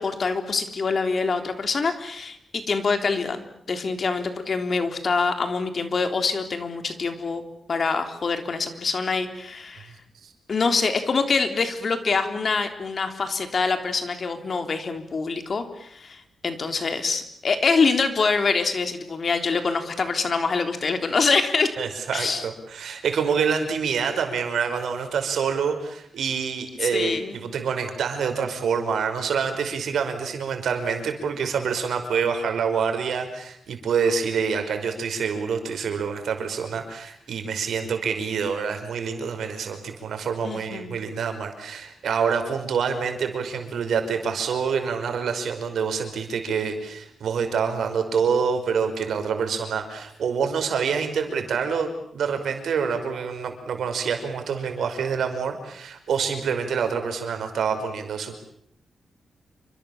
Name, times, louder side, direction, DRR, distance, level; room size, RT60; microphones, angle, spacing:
voice 1, 0.0-7.4 7.7-9.9 10.5-21.7 22.1-22.5 26.8-27.4 40.4-41.0, left 4 dB, 50° left, 7 dB, 3.6 m, -25 dB
voice 2, 21.8-58.4, right 6 dB, 90° right, 6 dB, 5.3 m, -26 dB
28.0 x 25.5 x 7.3 m, 0.71 s
wide cardioid pair, 120°, 0 cm